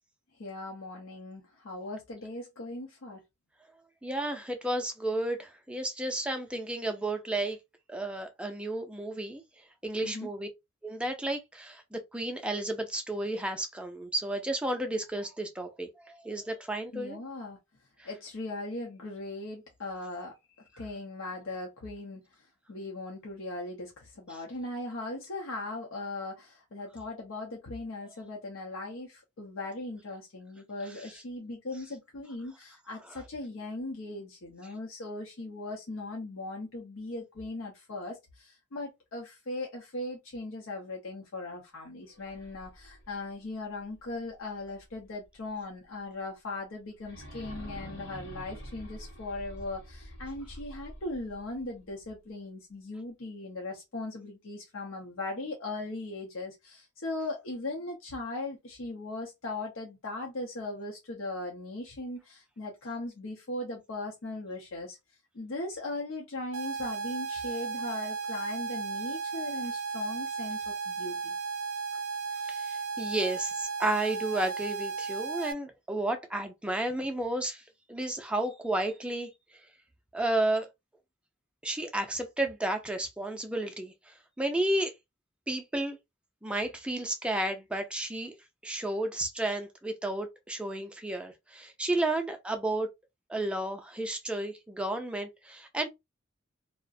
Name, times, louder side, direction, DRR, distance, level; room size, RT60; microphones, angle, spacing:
voice 1, 0.4-3.2 10.0-10.3 16.9-17.6 18.0-20.4 20.8-22.2 22.7-65.0 65.3-71.3, left 2 dB, 85° left, 0.6 m, -39 dB
voice 2, 4.0-7.6 7.9-9.4 9.8-10.5 10.8-17.2 18.0-18.1 24.3-24.4 33.1-33.2 72.5-77.6 77.9-79.3 80.1-80.7 81.6-84.9 85.5-86.0 86.4-88.3 88.6-92.9 93.3-95.9, right 1 dB, 5° right, 0.4 m, -32 dB
sound 1, 42.1-45.1 45.5-45.6 47.0-52.0, equal, 60° left, 0.9 m, -47 dB
sound 2, 66.5-75.5, right 5 dB, 85° right, 0.4 m, -35 dB
2.3 x 2.1 x 2.5 m
head